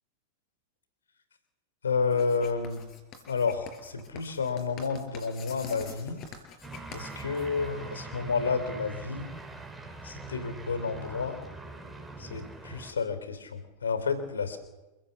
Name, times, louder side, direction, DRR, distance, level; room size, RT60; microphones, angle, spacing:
voice 1, 1.8-2.8 3.3-6.2 6.9-9.3 10.0-11.4 12.2-14.6, left 5 dB, 70° left, 11 dB, 3.3 m, -30 dB
Writing, 2.1-7.9, left 5 dB, 35° left, 5.3 m, -46 dB
sound 1, 6.6-12.9, right 3 dB, 5° right, 4.6 m, -42 dB
28.0 x 17.0 x 7.2 m, 1.0 s
figure-of-eight pair, 90°, 0 cm